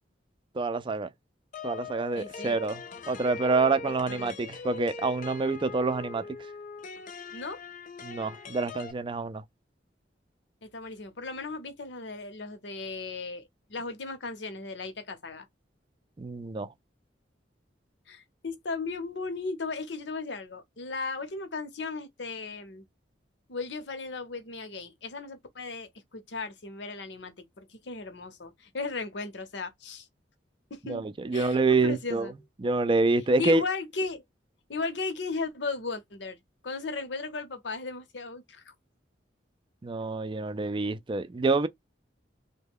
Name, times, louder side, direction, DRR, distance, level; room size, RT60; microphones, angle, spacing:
voice 1, 0.5-1.1 1.6-6.3 8.0-9.4 16.2-16.7 30.9-32.3 32.6-33.6 39.8-41.7, right 3 dB, 30° right, 0.4 m, -27 dB
sound 1, 1.5-8.9, left 5 dB, 45° left, 0.5 m, -41 dB
voice 2, 2.2-2.6 4.1-4.4 7.3-7.6 10.6-15.5 18.1-22.9 23.5-30.1 30.7-31.0 31.3-32.3 33.4-34.2 34.7-36.4 36.6-38.7, left 4 dB, 70° left, 0.8 m, -36 dB
3.2 x 2.2 x 3.5 m
head